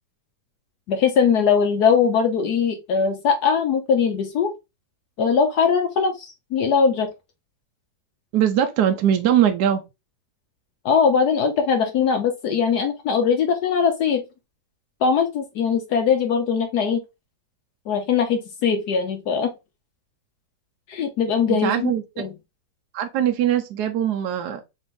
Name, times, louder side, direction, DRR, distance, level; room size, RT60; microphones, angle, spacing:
voice 1, 0.9-4.5 5.2-7.1 10.8-14.2 15.0-17.0 17.9-19.5 20.9-21.9 22.2-22.3, left 6 dB, 70° left, 1.1 m, -21 dB
voice 2, 8.3-9.8 21.5-22.3 22.9-24.6, right 10 dB, 70° right, 1.0 m, -21 dB
4.3 x 2.8 x 3.6 m
omnidirectional pair, 2.0 m